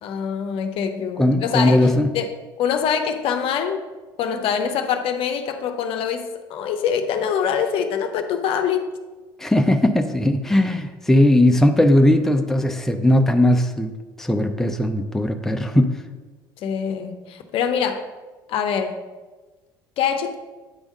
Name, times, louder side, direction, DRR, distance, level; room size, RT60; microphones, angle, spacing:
voice 1, 0.0-1.9 2.1-2.3 2.6-3.8 4.2-8.9 16.6-18.0 18.5-19.0 20.0-20.3, left 7 dB, 50° left, 7 dB, 0.7 m, -24 dB
voice 2, 1.2-2.1 9.4-13.9 14.2-15.9, left 1 dB, 5° left, 5 dB, 0.6 m, -18 dB
9.0 x 3.5 x 5.3 m, 1.3 s
figure-of-eight pair, 65°, 12 cm